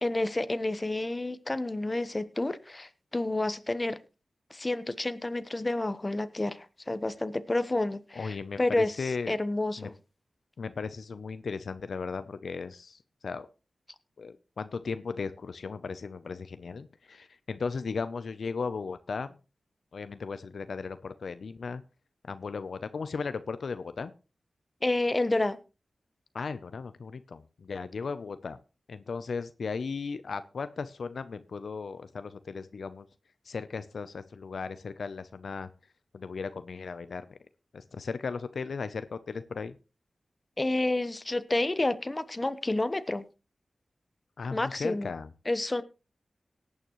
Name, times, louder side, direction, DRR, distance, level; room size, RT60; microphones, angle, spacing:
voice 1, 0.0-4.0 4.5-9.9 24.8-25.6 40.6-43.2 44.5-45.1 45.5-45.8, left 2 dB, 30° left, 13 dB, 1.0 m, -29 dB
voice 2, 8.2-9.4 9.8-9.9 10.6-13.5 14.2-19.4 19.9-21.8 22.3-24.1 26.3-28.6 28.9-33.1 33.5-35.7 36.1-37.4 37.7-39.7 44.4-45.3, left 5 dB, 80° left, 12 dB, 0.6 m, -36 dB
18.0 x 8.9 x 3.1 m, 0.31 s
cardioid pair, 55°, 0 cm